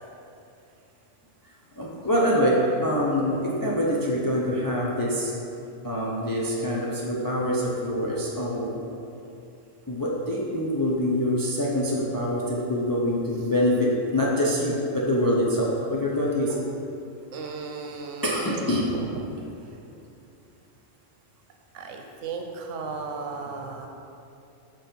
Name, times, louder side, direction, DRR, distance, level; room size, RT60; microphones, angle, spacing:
voice 1, 1.8-5.3 5.8-8.7 9.9-16.6 18.2-18.9, equal, 25° left, -5 dB, 0.5 m, -25 dB
voice 2, 17.3-19.3 21.7-23.9, right 4 dB, 90° right, 3 dB, 1.0 m, -35 dB
6.0 x 4.4 x 5.1 m, 2.7 s
omnidirectional pair, 1.2 m